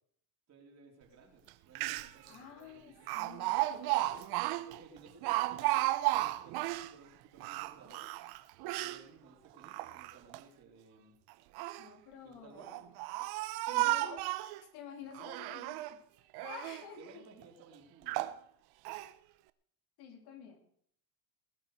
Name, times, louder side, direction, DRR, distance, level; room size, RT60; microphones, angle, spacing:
voice 1, 0.5-3.1 4.7-8.1 8.8-11.2 12.2-12.8 17.0-18.3, right 4 dB, 35° right, 1 dB, 4.2 m, -58 dB
Speech, 1.5-1.6 1.8-2.3 3.1-6.9 7.4-9.0 9.6-10.4 11.3-11.9 12.6-14.6 15.1-16.0 16.3-16.9 17.4-17.5 18.1-18.4 18.9-19.1, right 18 dB, 55° right, 0.9 m, -34 dB
voice 2, 2.3-4.3 11.8-12.9 13.7-14.2 14.7-16.0 16.4-17.2 20.0-20.6, left 7 dB, 55° left, 3 dB, 3.6 m, -50 dB
20.5 x 7.4 x 6.6 m, 0.65 s
supercardioid pair, 125°, 45 cm